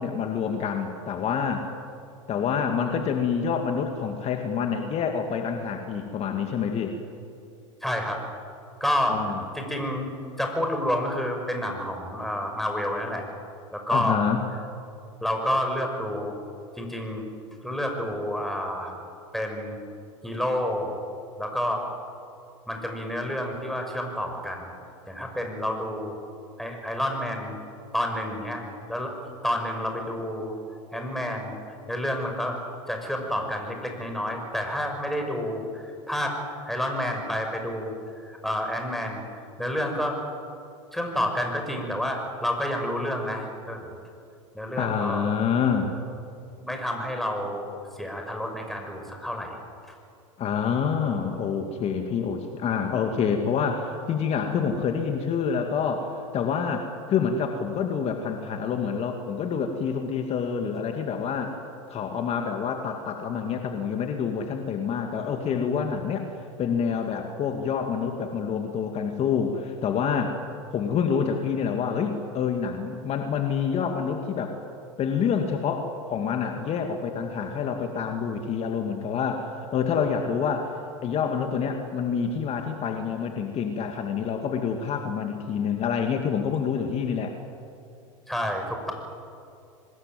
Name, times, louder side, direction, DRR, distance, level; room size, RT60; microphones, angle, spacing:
voice 1, 0.0-1.7 2.3-7.0 9.1-9.4 13.9-14.4 44.8-45.9 50.4-61.6 61.9-66.3 66.6-70.4 70.7-74.6 75.0-87.3, left 6 dB, 40° left, 4 dB, 2.4 m, -27 dB
voice 2, 7.8-8.2 8.8-9.2 9.5-10.1 10.4-13.2 13.7-14.2 15.2-16.3 16.8-17.3 17.6-18.9 19.3-19.8 20.2-20.9 21.4-21.8 22.7-24.7 25.1-26.2 26.6-27.6 27.9-28.6 28.9-29.1 29.4-30.6 30.9-31.6 31.9-32.6 32.9-36.4 36.7-37.9 38.2-39.2 39.6-40.2 40.9-43.9 44.5-45.3 46.6-49.5 88.3-88.9, equal, ahead, 3 dB, 6.3 m, -29 dB
26.0 x 20.5 x 9.3 m, 2.5 s
hypercardioid pair, 90°, 17 cm